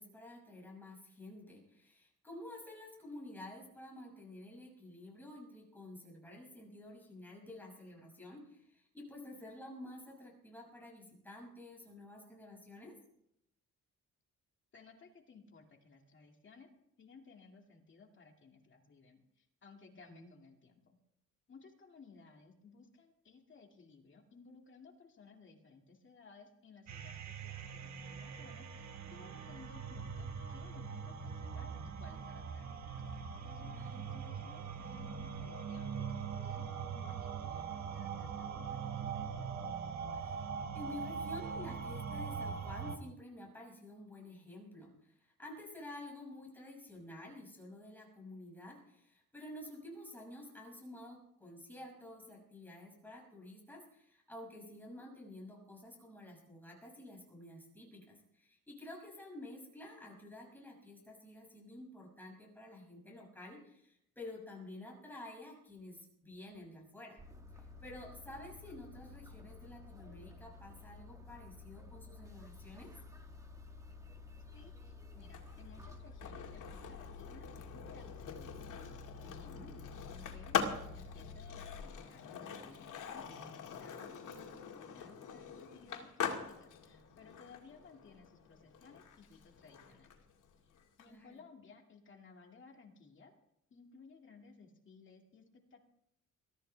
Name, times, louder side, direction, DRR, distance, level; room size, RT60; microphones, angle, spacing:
voice 1, 0.0-12.9 20.1-20.3 33.7-34.0 40.1-40.5 40.7-67.2 67.5-72.9 79.2-79.7 91.1-91.4, left 1 dB, 5° left, -2 dB, 6.3 m, -51 dB
voice 2, 14.7-16.7 17.0-21.0 21.5-32.7 33.1-39.5 74.5-78.6 79.2-79.7 80.1-90.2 90.6-90.7 91.0-93.3 93.7-95.8, left 4 dB, 40° left, 2 dB, 2.3 m, -59 dB
sound 1, 26.9-43.0, right 6 dB, 60° right, 1.3 m, -42 dB
sound 2, 67.2-81.8, left 4 dB, 10° right, 1.4 m, -51 dB
Skateboard, 75.2-91.1, left 7 dB, 85° left, 2.3 m, -43 dB
22.5 x 14.0 x 3.4 m, 0.76 s
wide cardioid pair, 165°, 31 cm